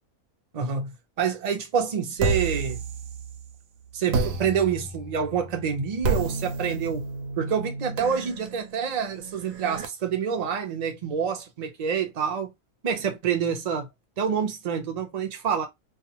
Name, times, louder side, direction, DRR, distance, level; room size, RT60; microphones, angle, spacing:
voice 1, 0.5-2.8 3.9-7.1 7.4-12.5 12.8-13.9 14.2-15.7, right 7 dB, 45° right, 0.5 m, -27 dB
sound 1, 2.2-3.6 4.1-9.9, right 4 dB, 70° right, 0.9 m, -31 dB
2.4 x 2.3 x 2.8 m
omnidirectional pair, 1.5 m